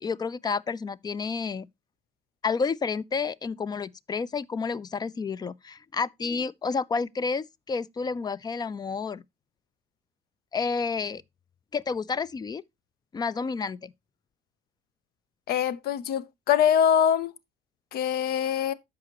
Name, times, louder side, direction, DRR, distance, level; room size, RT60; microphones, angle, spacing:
voice 1, 0.0-1.7 2.4-9.2 10.5-11.2 11.7-12.6 13.1-13.9, left 5 dB, 25° left, 0.4 m, -30 dB
voice 2, 15.5-17.3 17.9-18.7, left 9 dB, 65° left, 0.7 m, -23 dB
13.0 x 4.9 x 2.9 m
cardioid pair, 110°, 17 cm